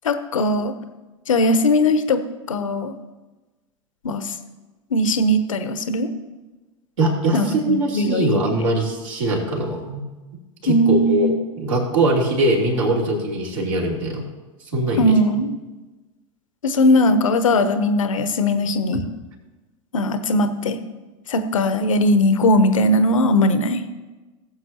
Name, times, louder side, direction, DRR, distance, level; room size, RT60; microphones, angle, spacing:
voice 1, 0.0-0.7 1.3-2.2 2.5-2.9 4.0-4.2 4.9-6.1 7.3-8.6 10.7-11.3 15.0-15.5 16.6-19.1 19.9-20.8 21.3-23.8, left 1 dB, 70° left, 10 dB, 0.9 m, -19 dB
voice 2, 7.0-10.0 10.6-14.2 14.7-15.1, right 1 dB, 65° right, -2 dB, 3.1 m, -21 dB
18.0 x 7.8 x 2.9 m, 1.2 s
figure-of-eight pair, 90°, 17 cm